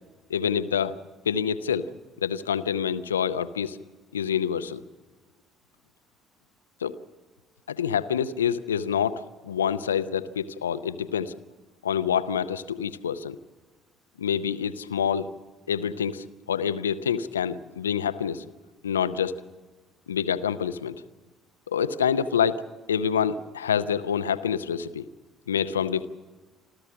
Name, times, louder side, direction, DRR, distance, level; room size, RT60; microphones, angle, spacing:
voice 1, 0.3-0.9 1.3-1.9 2.2-3.8 4.1-4.8 6.8-7.0 7.7-11.3 11.8-13.4 14.2-15.3 15.7-18.4 18.8-19.4 20.1-21.0 21.7-22.6 22.9-25.1 25.5-26.1, left 8 dB, 80° left, 14 dB, 0.6 m, -27 dB
27.5 x 14.0 x 7.7 m, 1.3 s
figure-of-eight pair, 50°, 0 cm